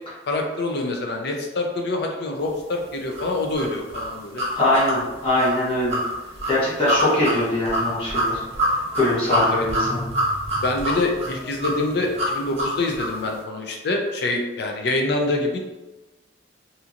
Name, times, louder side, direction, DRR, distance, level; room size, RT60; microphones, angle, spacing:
voice 1, 0.3-4.4 9.3-9.7 10.6-15.6, left 2 dB, 60° left, 2 dB, 0.5 m, -25 dB
sound 1, 3.1-13.2, equal, 35° right, 0.9 m, -26 dB
voice 2, 4.6-6.0 6.4-8.4 8.9-10.0, left 1 dB, 30° left, -9 dB, 0.9 m, -22 dB
2.8 x 2.8 x 2.4 m, 1.1 s
head